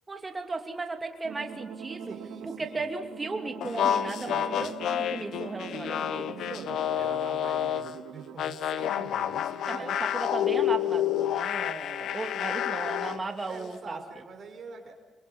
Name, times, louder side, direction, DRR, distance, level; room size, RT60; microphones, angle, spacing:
voice 1, 0.1-2.2 2.4-6.4 9.7-14.0, right 3 dB, 25° right, 4 dB, 2.9 m, -36 dB
sound 1, 1.2-8.4, right 7 dB, 85° right, 2.1 m, -43 dB
voice 2, 2.0-2.9 4.2-4.7 6.4-10.4 11.9-13.2 13.5-14.9, right 4 dB, 50° right, 3 dB, 5.7 m, -45 dB
sound 2, 3.6-7.9 8.4-13.2, left 11 dB, 75° left, 0.9 m, -29 dB
28.5 x 23.0 x 5.6 m, 1.2 s
cardioid pair, 90°, 0 cm